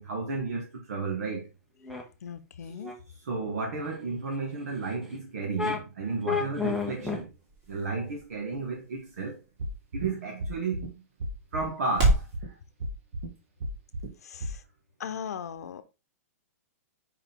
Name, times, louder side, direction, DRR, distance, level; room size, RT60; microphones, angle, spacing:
voice 1, 0.0-1.4 3.2-7.3 7.7-9.4 9.9-11.0 11.5-12.5, right 3 dB, 75° right, 1.8 m, -33 dB
sound 1, 1.8-2.0 2.8-2.9 3.4-3.5 4.8-4.9 5.6-5.8 6.2-7.2, left 5 dB, ahead, 0.6 m, -30 dB
voice 2, 2.2-2.9 6.3-6.4 14.2-14.6 15.0-15.8, left 7 dB, 90° left, 0.8 m, -38 dB
sound 2, 6.1-12.4, right 1 dB, 30° right, 2.5 m, -33 dB
sound 3, 9.6-10.1 10.4-10.9 11.2-11.7 12.0-12.5 12.8-13.3 13.6-14.1 14.4-14.5, right 1 dB, 50° right, 1.5 m, -33 dB
5.0 x 5.0 x 3.7 m
hypercardioid pair, 180°, 8 cm